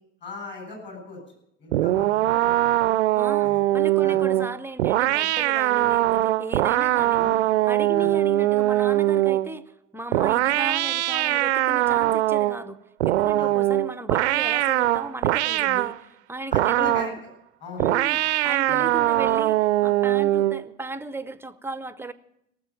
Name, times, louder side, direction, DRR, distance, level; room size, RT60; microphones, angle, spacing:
voice 1, 0.2-1.2 1.6-2.7 3.4-3.6 4.0-4.2 7.2-7.4 7.9-8.1 13.3-13.5 16.5-17.3 17.6-17.9 18.7-18.9, left 4 dB, 30° left, 3 dB, 7.6 m, -39 dB
sound 1, 1.7-9.5 10.1-12.6 13.0-16.0 16.5-17.2 17.8-20.6, right 15 dB, 70° right, 0.6 m, -22 dB
voice 2, 3.1-17.2 17.8-22.1, right 2 dB, 5° right, 15 dB, 0.7 m, -36 dB
17.5 x 7.5 x 9.0 m, 0.79 s
figure-of-eight pair, 75°, 36 cm